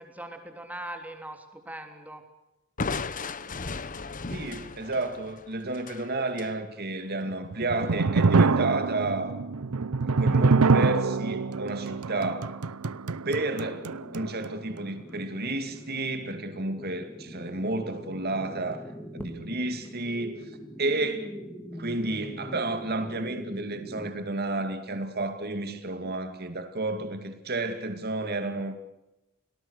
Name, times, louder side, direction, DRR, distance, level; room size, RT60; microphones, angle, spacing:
voice 1, 0.0-2.2, right 1 dB, 5° right, 5 dB, 3.3 m, -40 dB
Crushing, 2.8-6.6, left 4 dB, 40° left, 1.1 m, -35 dB
voice 2, 4.3-9.3 10.0-12.5 13.2-18.8 19.1-21.3 21.7-28.8, right 2 dB, 45° right, 7 dB, 2.5 m, -31 dB
sound 1, 7.3-14.5, right 4 dB, 85° right, 0.7 m, -25 dB
sound 2, 13.6-24.1, equal, 10° left, 3.1 m, -43 dB
29.5 x 19.5 x 6.5 m, 0.93 s
head